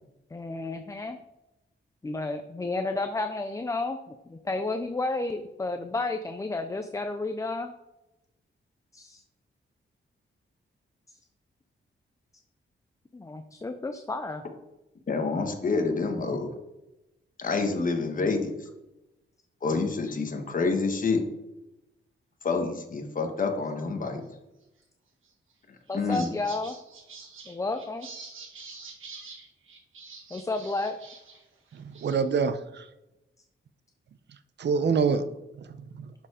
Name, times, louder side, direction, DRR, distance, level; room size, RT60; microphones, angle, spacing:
voice 1, 0.3-1.2 2.0-7.7 8.9-9.2 13.1-14.4 25.9-26.8 27.5-28.1 30.3-31.0, left 2 dB, 15° left, 7 dB, 0.4 m, -31 dB
voice 2, 15.1-16.5 17.4-18.5 19.6-21.2 22.4-24.2 25.9-26.3, left 4 dB, 40° left, 5 dB, 1.2 m, -27 dB
sound 1, 25.2-25.5 25.9-31.4 31.7-32.3, right 4 dB, 75° right, 1.8 m, -46 dB
voice 3, 31.7-32.9 34.6-35.2 35.6-36.1, right 5 dB, 60° right, 12 dB, 0.6 m, -26 dB
11.0 x 4.6 x 4.9 m, 0.96 s
wide cardioid pair, 180°, 21 cm